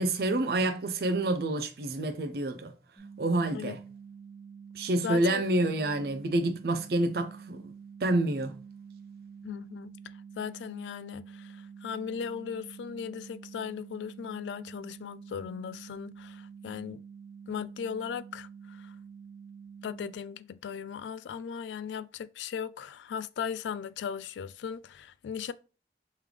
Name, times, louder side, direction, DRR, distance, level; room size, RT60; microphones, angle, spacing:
voice 1, 0.0-2.7 3.2-3.8 4.8-7.6 8.0-8.5, right 2 dB, 60° right, 0.5 m, -28 dB
sound 1, 3.0-20.2, right 6 dB, 15° left, 0.8 m, -48 dB
voice 2, 5.0-5.4 9.4-9.9 10.4-17.0 17.5-19.0 19.8-25.5, left 7 dB, 90° left, 0.3 m, -37 dB
3.6 x 3.2 x 3.3 m
head